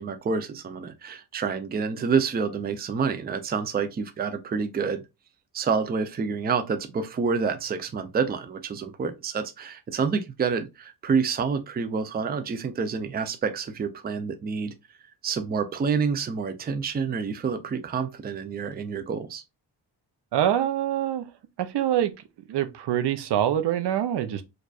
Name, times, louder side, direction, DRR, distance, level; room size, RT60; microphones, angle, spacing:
voice 1, 0.0-5.0 5.5-14.7 15.2-19.4, right 5 dB, 25° right, 0.4 m, -28 dB
voice 2, 20.3-21.2 21.6-22.1 22.5-24.4, right 11 dB, 80° right, 0.6 m, -25 dB
4.8 x 2.4 x 2.3 m
wide cardioid pair, 130°, 40 cm